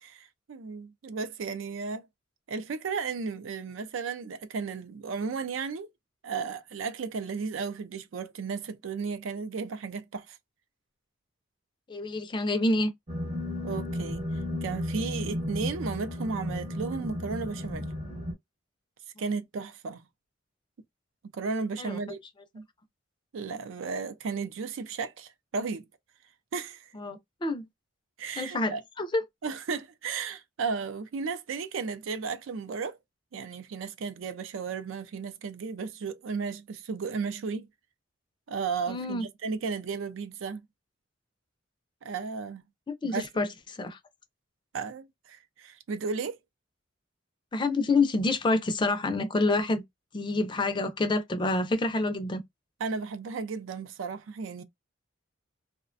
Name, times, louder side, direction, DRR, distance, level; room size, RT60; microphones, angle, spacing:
voice 1, 0.0-2.1 2.5-5.9 6.2-10.4 13.6-14.3 14.6-17.9 19.2-20.0 21.2-22.2 22.5-22.7 23.3-25.8 26.5-26.9 28.2-28.8 29.4-33.0 33.3-37.7 38.5-40.6 42.0-42.6 43.0-43.3 44.7-46.4 52.8-54.6, right 5 dB, 85° right, 0.4 m, -34 dB
voice 2, 11.9-12.9 21.8-22.2 26.9-27.6 28.3-29.2 38.9-39.3 42.9-44.0 47.5-49.8 50.1-52.4, left 2 dB, 25° left, 0.4 m, -28 dB
sound 1, 13.1-18.3, left 1 dB, 40° right, 0.8 m, -34 dB
2.4 x 2.1 x 2.4 m
head